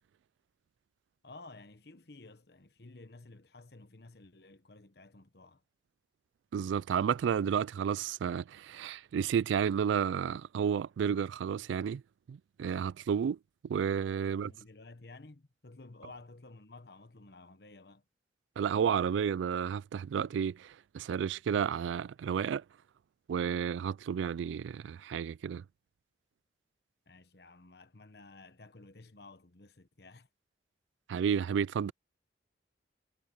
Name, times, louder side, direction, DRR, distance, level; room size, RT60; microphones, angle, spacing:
voice 1, 1.2-5.6 14.2-18.0 27.1-30.3, left 2 dB, 60° left, 1.1 m, -53 dB
voice 2, 6.5-12.0 12.3-13.4 13.6-14.5 18.6-22.6 23.3-25.6 31.1-31.9, right 7 dB, 85° right, 0.3 m, -31 dB
head